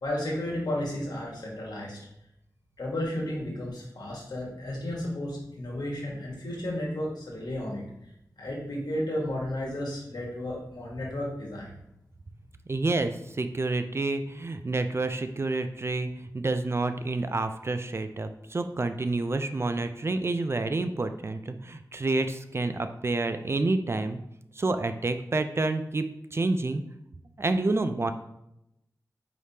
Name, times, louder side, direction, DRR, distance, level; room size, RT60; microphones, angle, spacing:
voice 1, 0.0-2.0 2.8-7.8 8.4-11.8, left 1 dB, 75° left, -3 dB, 1.3 m, -33 dB
voice 2, 12.7-24.2 24.6-26.1 26.3-26.8 27.4-28.1, right 2 dB, 40° right, 9 dB, 0.3 m, -28 dB
4.8 x 3.3 x 2.8 m, 0.81 s
cardioid pair, 50°, 7 cm